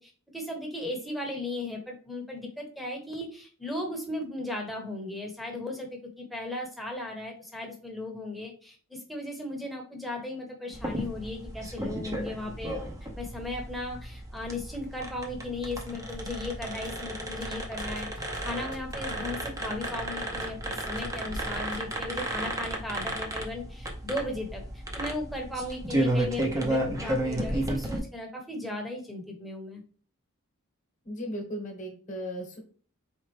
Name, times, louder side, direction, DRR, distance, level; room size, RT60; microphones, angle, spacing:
voice 1, 0.0-5.9 6.2-12.8 13.2-29.8, left 1 dB, ahead, 1 dB, 1.0 m, -36 dB
sound 1, 10.7-28.0, right 1 dB, 15° right, 0.7 m, -33 dB
sound 2, 16.1-16.4 16.7-16.9 17.2-17.5 17.8-19.4 19.7-19.9 20.2-20.5 20.8-22.1, left 2 dB, 70° left, 0.7 m, -51 dB
voice 2, 31.0-32.6, equal, 35° left, 2 dB, 1.3 m, -36 dB
4.4 x 3.4 x 3.2 m, 0.43 s
head